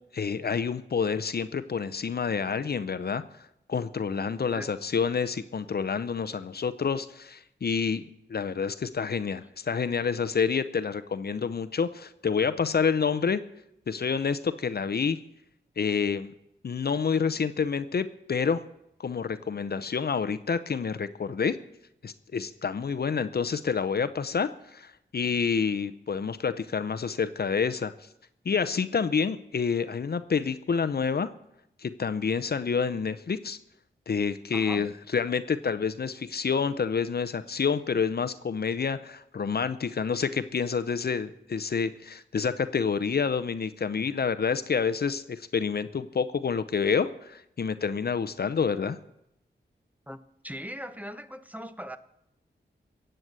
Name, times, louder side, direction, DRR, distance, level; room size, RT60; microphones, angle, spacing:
voice 1, 0.1-3.2 3.7-13.4 13.9-15.2 15.8-16.3 16.6-18.6 19.0-21.6 22.0-27.9 28.4-31.3 31.8-33.6 34.1-49.0, left 6 dB, 55° left, 13 dB, 0.7 m, -28 dB
voice 2, 4.4-4.7 34.5-34.9 50.1-50.2 50.4-52.0, equal, 10° right, 10 dB, 0.9 m, -39 dB
15.5 x 7.9 x 8.0 m, 0.80 s
cardioid pair, 60°, 19 cm